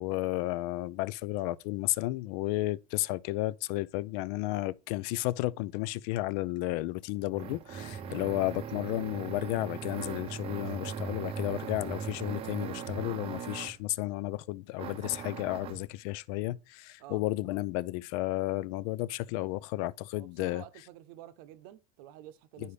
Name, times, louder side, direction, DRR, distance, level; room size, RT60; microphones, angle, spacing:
voice 1, 0.0-20.6 22.6-22.7, left 18 dB, 80° left, 0.5 m, -33 dB
sound 1, 6.7-13.9 14.8-15.9, right 7 dB, 30° right, 0.5 m, -39 dB
voice 2, 20.1-22.7, right 13 dB, 80° right, 0.8 m, -50 dB
11.0 x 4.1 x 3.3 m
cardioid pair, 155°, 19 cm